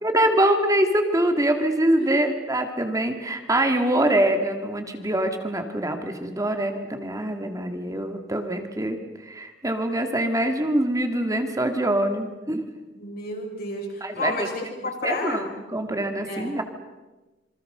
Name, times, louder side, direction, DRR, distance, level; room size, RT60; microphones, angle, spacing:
voice 1, 0.0-9.0 9.2-12.7 14.0-14.5 15.0-16.6, right 1 dB, 20° right, 5 dB, 2.1 m, -24 dB
voice 2, 12.9-15.4 16.3-16.5, left 2 dB, 55° left, 0 dB, 6.3 m, -31 dB
27.0 x 24.5 x 6.7 m, 1.1 s
head